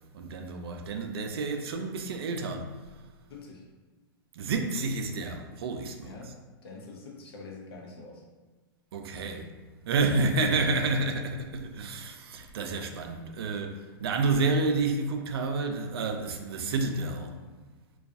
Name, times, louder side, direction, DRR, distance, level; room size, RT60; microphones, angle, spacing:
voice 1, 0.1-2.8 4.3-6.2 8.9-9.5 9.8-17.4, right 3 dB, 85° right, 0.4 m, -29 dB
voice 2, 3.3-3.7 6.0-6.4 6.6-8.2, left 3 dB, 85° left, 0.6 m, -45 dB
2.3 x 2.3 x 2.5 m
hypercardioid pair, 135°, 13 cm